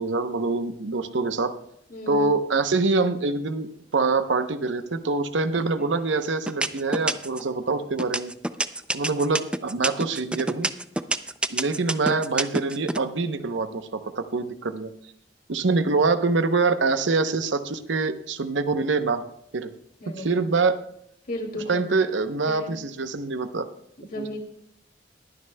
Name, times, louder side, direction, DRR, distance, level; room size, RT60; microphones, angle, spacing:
voice 1, 0.0-1.5 2.1-8.3 8.9-10.7 11.5-14.9 15.5-19.2 19.5-19.7 20.2-20.8 21.7-23.6 24.1-24.3, right 3 dB, 90° right, 10 dB, 0.8 m, -25 dB
voice 2, 1.9-2.4 20.0-20.4 21.3-21.8 22.5-22.8 24.0-24.4, left 1 dB, 50° left, 1 dB, 2.4 m, -34 dB
sound 1, 5.5-6.0 6.5-7.5 8.0-13.0, right 1 dB, 5° right, 0.4 m, -27 dB
22.0 x 9.7 x 2.2 m, 0.73 s
head